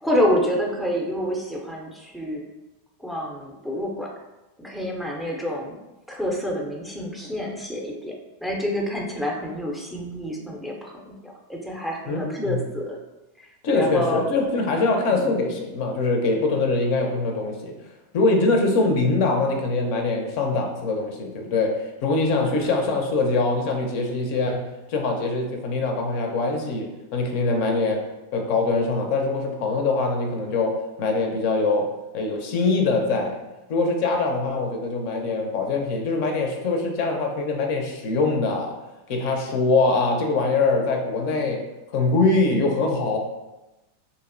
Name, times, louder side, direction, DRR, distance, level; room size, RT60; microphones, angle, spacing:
voice 1, 0.0-2.4 3.0-4.1 4.6-5.7 6.1-8.1 8.4-13.0 13.4-13.5 13.7-14.3 15.1-15.4 22.4-22.9, equal, ahead, -1 dB, 0.4 m, -28 dB
voice 2, 12.1-12.6 13.6-17.7 18.1-21.7 22.0-24.6 24.9-26.9 27.1-28.0 28.3-30.7 31.0-31.9 32.1-33.4 33.7-38.7 39.1-41.6 41.9-43.2, left 3 dB, 60° left, 2 dB, 0.4 m, -23 dB
2.5 x 2.0 x 2.5 m, 1.0 s
hypercardioid pair, 110°, 0 cm